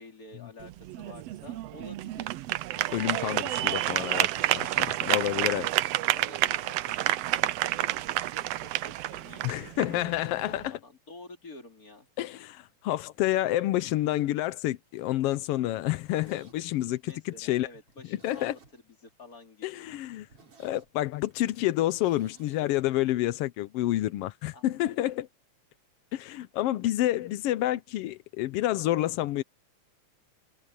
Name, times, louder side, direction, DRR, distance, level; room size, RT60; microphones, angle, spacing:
voice 1, 0.0-2.4 2.7-3.1 4.5-5.8 6.1-10.1 10.5-12.1 17.0-19.8 24.5-25.1, left 2 dB, 30° left, 3.6 m, -50 dB
sound 1, 0.6-10.7, right 15 dB, 75° right, 1.5 m, -29 dB
voice 2, 2.9-4.3 4.8-5.7 9.4-10.8 12.2-17.7 18.2-18.6 19.6-20.3 20.6-25.3 26.1-29.4, left 15 dB, 80° left, 1.3 m, -29 dB
Zipper (clothing), 15.9-19.1 19.4-19.5 19.9-20.0 20.2-22.7 22.9-23.0, right 4 dB, 50° right, 5.4 m, -59 dB
omnidirectional pair, 3.4 m